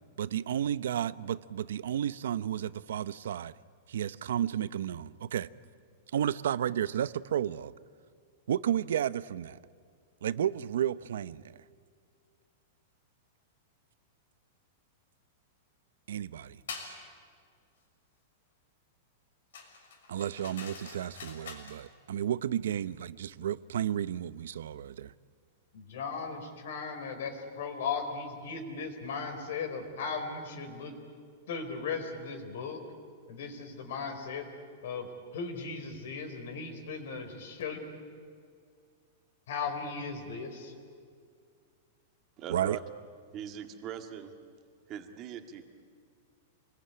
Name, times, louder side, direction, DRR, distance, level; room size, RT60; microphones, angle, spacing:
voice 1, 0.2-3.5 3.9-5.5 6.1-7.7 8.5-9.6 10.2-11.5 16.1-16.6 20.1-25.1 42.5-42.8, right 10 dB, 80° right, 0.8 m, -32 dB
sound 1, 16.7-17.0 19.5-21.8, left 5 dB, 90° left, 6.0 m, -45 dB
voice 2, 25.7-30.9 31.5-32.8 33.3-34.5 34.8-35.1 35.3-37.8 39.5-40.7, left 5 dB, 60° left, 4.4 m, -37 dB
voice 3, 42.4-42.8 43.3-44.3 44.9-45.8, right 9 dB, 25° right, 1.9 m, -41 dB
28.0 x 21.0 x 9.9 m
supercardioid pair, 175°, 0 cm